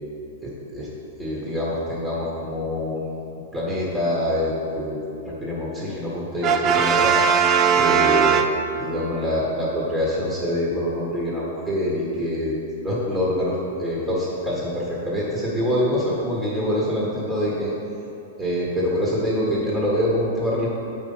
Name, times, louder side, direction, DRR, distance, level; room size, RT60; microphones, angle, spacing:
voice 1, 0.4-0.9 1.2-3.1 3.5-5.0 5.4-7.2 7.7-8.4 8.8-17.7 18.4-20.7, equal, 10° right, -6 dB, 1.4 m, -25 dB
Brass instrument, 6.4-9.1, right 6 dB, 25° right, 0.4 m, -19 dB
7.6 x 5.3 x 5.5 m, 2.9 s
hypercardioid pair, 150°, 0 cm